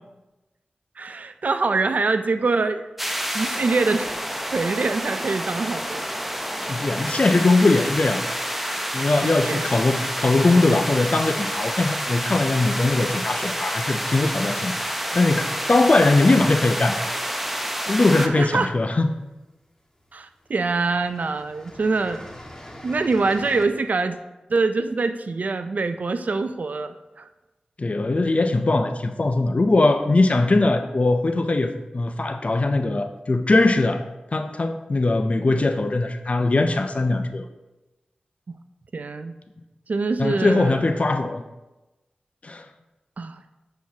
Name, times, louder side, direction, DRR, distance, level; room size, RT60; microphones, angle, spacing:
voice 1, 1.0-2.8 3.3-4.2 4.5-6.0 9.2-9.6 18.2-18.7 20.1-22.2 22.8-24.2 24.5-27.3 38.5-38.6 38.9-39.3 39.9-40.8 43.2-43.4, right 3 dB, 65° right, 10 dB, 0.4 m, -24 dB
sound 1, 3.0-18.3, equal, 5° right, 0.6 m, -28 dB
voice 2, 6.7-8.3 8.9-14.8 15.1-17.1 17.9-19.1 27.8-34.0 34.3-37.5 40.2-41.4 42.4-42.6, left 2 dB, 50° left, 8 dB, 0.6 m, -20 dB
sound 2, 18.5-19.1 20.0-20.1 20.4-23.6, left 1 dB, 20° left, 1.4 m, -43 dB
10.5 x 4.6 x 2.9 m, 1.1 s
cardioid pair, 40°, 3 cm